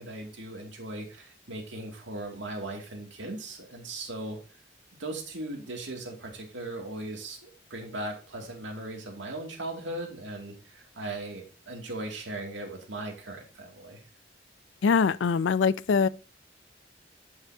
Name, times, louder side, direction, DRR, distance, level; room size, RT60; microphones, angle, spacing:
voice 1, 0.0-4.6 4.9-14.0, right 2 dB, 80° right, 2.4 m, -38 dB
voice 2, 14.8-16.1, left 5 dB, 80° left, 0.4 m, -23 dB
11.5 x 5.7 x 2.8 m
head